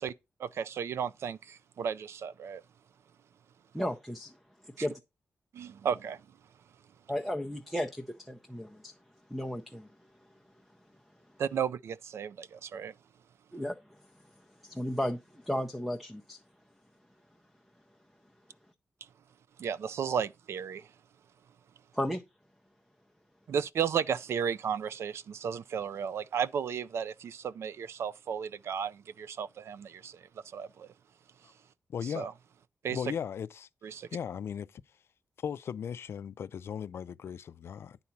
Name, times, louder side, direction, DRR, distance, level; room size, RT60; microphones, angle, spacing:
voice 1, 0.4-2.6 4.8-4.9 5.5-6.2 11.4-12.9 19.6-20.9 23.5-30.9 31.4-31.5 32.0-32.3 32.8-33.0 33.8-34.1, right 7 dB, 75° right, 0.4 m, -34 dB
voice 2, 3.7-4.3 4.6-5.0 7.1-8.9 9.3-9.9 13.5-13.8 14.6-15.2 15.5-16.4 21.9-22.2, equal, ahead, 0.5 m, -34 dB
voice 3, 31.9-32.3 32.9-33.7 34.1-34.8 35.4-38.0, left 8 dB, 65° left, 0.4 m, -37 dB
9.7 x 4.0 x 5.7 m
wide cardioid pair, 165°, 5 cm